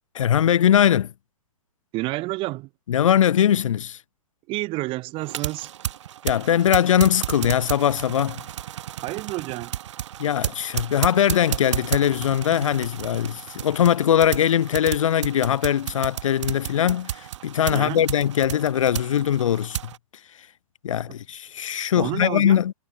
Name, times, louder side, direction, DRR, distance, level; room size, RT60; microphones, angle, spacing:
voice 1, 0.1-1.1 2.9-4.0 6.2-8.4 10.2-19.8 20.8-22.7, left 10 dB, 65° left, 0.5 m, -21 dB
voice 2, 1.9-2.7 4.5-5.7 9.0-9.7 17.7-18.0 22.0-22.6, right 21 dB, 30° right, 1.7 m, -29 dB
sound 1, 5.2-20.0, right 11 dB, 55° right, 1.6 m, -33 dB
figure-of-eight pair, 120°, 18 cm